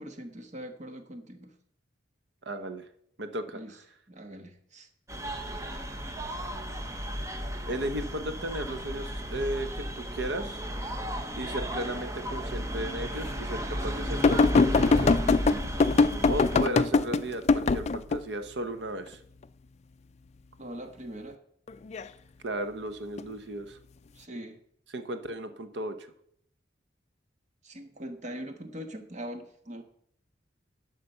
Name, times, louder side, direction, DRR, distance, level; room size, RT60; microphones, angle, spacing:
voice 1, 0.0-1.5 3.5-3.8 4.1-4.9 20.6-21.4 24.1-24.6 27.6-29.8, equal, 40° right, 7 dB, 1.2 m, -41 dB
voice 2, 2.4-2.9 3.2-3.6 7.6-10.6 11.4-15.0 16.3-19.2 22.4-23.8 24.9-26.1, right 1 dB, 65° right, 10 dB, 0.9 m, -35 dB
sound 1, 5.1-16.6, equal, 15° right, 0.9 m, -34 dB
sound 2, 14.2-18.2 21.7-22.0 23.2-23.3, left 4 dB, 35° left, 0.4 m, -22 dB
11.5 x 5.1 x 6.6 m, 0.68 s
head